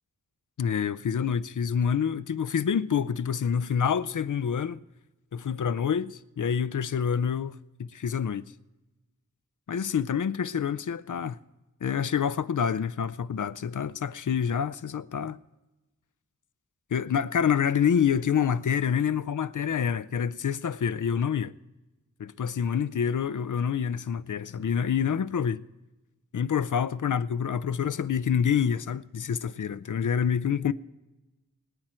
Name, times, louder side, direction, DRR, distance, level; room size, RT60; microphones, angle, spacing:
voice 1, 0.6-4.8 5.3-8.4 9.7-11.4 11.8-15.4 16.9-21.5 22.2-25.6 26.3-30.7, left 7 dB, 90° left, 0.5 m, -27 dB
25.0 x 8.9 x 4.4 m
wide cardioid pair, 65°, 30 cm